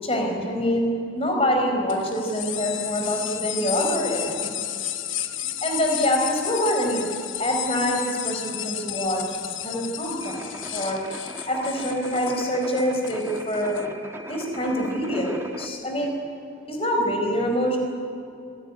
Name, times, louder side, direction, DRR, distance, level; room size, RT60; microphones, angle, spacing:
voice 1, 0.0-0.9 1.1-4.5 5.4-7.1 7.4-11.0 11.5-13.8 14.3-16.1 16.7-17.8, equal, 30° left, 2 dB, 4.5 m, -25 dB
sound 1, 1.9-13.8, left 12 dB, 85° left, 1.2 m, -33 dB
sound 2, 10.2-15.7, right 1 dB, 15° right, 1.2 m, -39 dB
26.0 x 17.5 x 9.7 m, 2.5 s
head